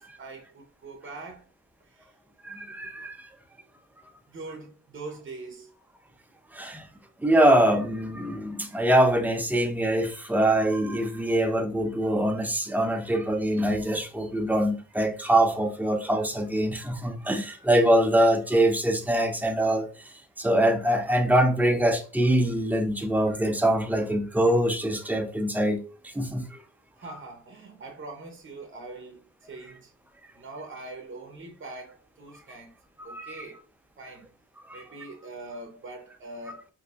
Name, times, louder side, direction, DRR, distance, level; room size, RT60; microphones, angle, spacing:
voice 1, 0.0-1.5 1.9-2.1 4.3-5.7 27.0-29.9 30.3-32.7 33.0-33.6 34.0-34.3 34.7-36.7, right 2 dB, 40° right, 0.8 m, -42 dB
voice 2, 2.4-3.3 6.5-6.9 7.2-20.1 20.4-26.6 33.1-33.4 34.7-34.8, right 1 dB, 5° right, 0.5 m, -24 dB
4.3 x 2.7 x 2.4 m
wide cardioid pair, 120°, 32 cm